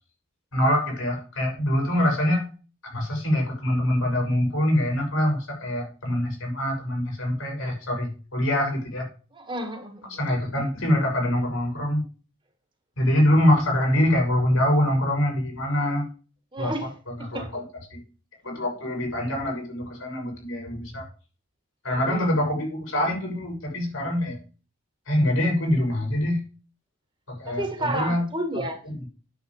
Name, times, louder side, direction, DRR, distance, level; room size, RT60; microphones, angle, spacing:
voice 1, 0.5-2.4 2.9-9.0 10.1-12.0 13.0-16.1 16.6-16.7 17.1-17.6 17.9-18.0 18.4-21.1 21.8-24.4 25.1-26.4 27.3-28.2 28.5-29.1, left 1 dB, 80° left, 6.5 m, -24 dB
voice 2, 9.3-10.2 16.5-16.9 17.2-17.6 22.1-22.3 27.5-28.8, right 1 dB, 20° right, 1.5 m, -31 dB
9.6 x 7.6 x 4.8 m
head